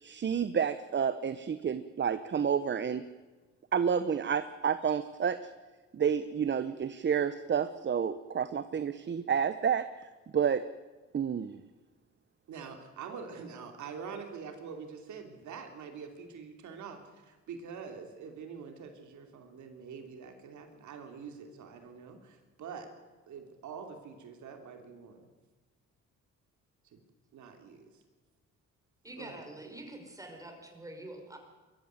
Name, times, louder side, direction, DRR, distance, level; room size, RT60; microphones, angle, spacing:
voice 1, 0.0-3.1 3.7-5.5 5.9-10.6 11.1-11.6, right 7 dB, 35° right, 12 dB, 0.9 m, -30 dB
voice 2, 12.5-22.9 23.3-25.3 26.9-27.0 27.3-27.9 29.2-29.4, right 6 dB, 75° right, 5 dB, 3.0 m, -45 dB
voice 3, 29.0-31.4, right 1 dB, 10° right, 3 dB, 5.4 m, -46 dB
22.5 x 14.0 x 9.6 m, 1.3 s
cardioid pair, 90°, 30 cm